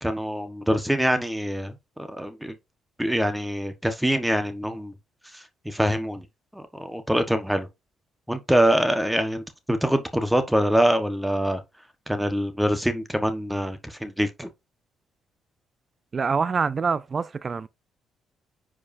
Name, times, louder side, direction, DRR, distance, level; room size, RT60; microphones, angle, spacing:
voice 1, 0.0-1.7 2.2-2.5 3.0-4.9 5.3-6.2 6.5-7.7 8.3-11.6 12.1-14.5, equal, 5° right, 1.3 m, -24 dB
voice 2, 16.1-17.7, right 5 dB, 40° right, 0.4 m, -25 dB
9.6 x 5.0 x 2.7 m
supercardioid pair, 75°, 0 cm